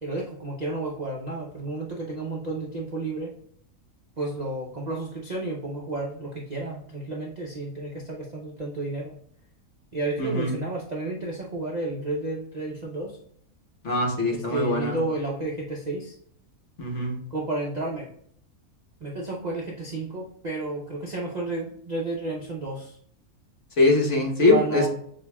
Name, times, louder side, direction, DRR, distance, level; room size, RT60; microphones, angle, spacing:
voice 1, 0.0-3.3 4.2-9.2 9.9-13.2 14.3-16.1 17.3-18.1 19.0-23.0 24.5-24.9, right 2 dB, 45° right, -3 dB, 0.5 m, -31 dB
voice 2, 10.2-10.6 13.8-15.0 16.8-17.2 23.8-24.9, left 2 dB, 55° left, -1 dB, 1.3 m, -22 dB
6.9 x 2.7 x 2.2 m, 0.63 s
omnidirectional pair, 1.6 m